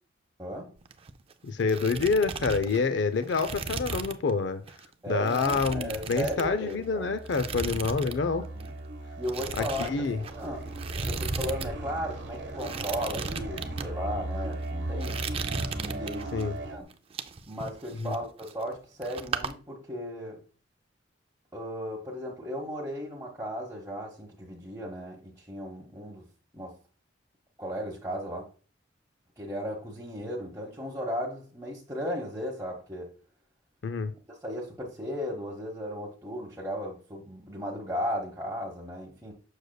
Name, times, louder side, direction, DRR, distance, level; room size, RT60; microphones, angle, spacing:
voice 1, 0.4-0.7 5.0-7.0 8.5-8.7 9.2-10.7 11.0-16.9 17.5-20.4 21.5-26.3 26.5-26.7 27.6-28.5 29.4-33.1 34.3-39.3, equal, 15° right, 1.0 m, -36 dB
sound 1, 0.8-1.3 1.6-4.3 4.7-4.8 5.3-6.8 7.3-8.2 8.4-8.7 9.2-11.7 12.0-12.1 12.5-13.9 14.4-14.7 15.0-16.4 16.9-18.8 19.0-19.5, right 4 dB, 30° right, 0.4 m, -36 dB
voice 2, 1.4-4.6 5.1-8.4 9.6-10.2 16.3-16.5 18.0-18.1 33.8-34.1, left 4 dB, 75° left, 0.5 m, -27 dB
sound 2, 5.7-16.8, right 2 dB, 75° right, 1.1 m, -38 dB
6.4 x 6.4 x 2.3 m
head